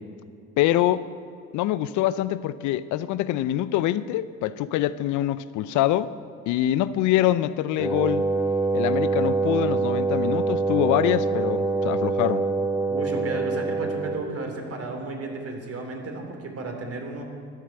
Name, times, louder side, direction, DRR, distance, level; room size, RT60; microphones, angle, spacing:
voice 1, 0.6-1.0 1.5-6.1 6.5-8.2 8.7-12.4, left 13 dB, 65° left, 16 dB, 0.6 m, -24 dB
Wind instrument woodwind instrument, 7.8-14.4, right 3 dB, 5° right, 2.0 m, -25 dB
voice 2, 12.9-17.2, right 3 dB, 45° right, 3 dB, 3.3 m, -33 dB
13.0 x 10.0 x 7.9 m, 2.3 s
hypercardioid pair, 65°, 33 cm